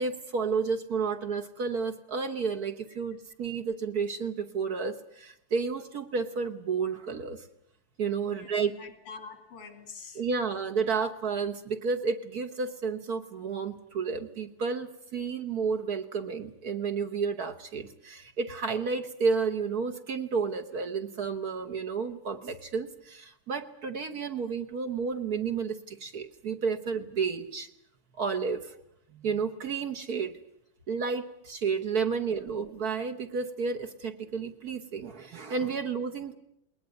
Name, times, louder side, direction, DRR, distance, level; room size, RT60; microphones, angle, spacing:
voice 1, 0.0-7.5 8.0-8.7 10.2-27.7 28.2-28.7 29.1-30.4 30.9-36.4, right 5 dB, 50° right, 5 dB, 1.4 m, -31 dB
voice 2, 8.2-10.2, left 5 dB, 85° left, 8 dB, 4.0 m, -46 dB
21.0 x 19.5 x 9.4 m, 0.76 s
omnidirectional pair, 2.4 m